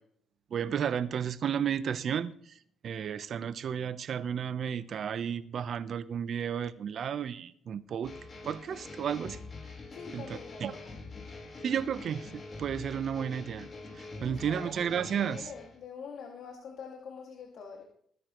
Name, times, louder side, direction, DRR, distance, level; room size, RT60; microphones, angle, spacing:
voice 1, 0.5-2.6 2.8-8.1 8.4-9.4 10.1-10.2 10.6-10.7 11.6-13.7 13.9-15.5, right 8 dB, 60° right, 0.9 m, -33 dB
sound 1, 8.0-15.8, left 3 dB, 40° left, 4.4 m, -45 dB
voice 2, 9.9-10.9 14.1-14.7 15.2-17.8, left 6 dB, 75° left, 2.3 m, -45 dB
20.5 x 9.7 x 3.2 m
cardioid pair, 90°, 0 cm